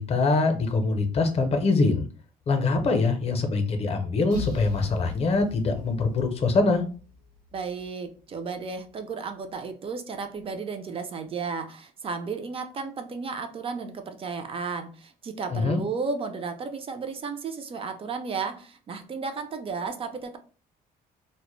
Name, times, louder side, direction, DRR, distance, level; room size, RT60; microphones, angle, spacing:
voice 1, 0.0-2.1 2.5-6.8 15.5-15.8, left 3 dB, 40° left, 6 dB, 0.6 m, -24 dB
sound 1, 4.3-8.0, left 5 dB, 85° right, 0.8 m, -40 dB
voice 2, 7.5-20.4, right 5 dB, 35° right, 7 dB, 0.4 m, -33 dB
2.1 x 2.0 x 3.0 m, 0.38 s
cardioid pair, 100°, 16 cm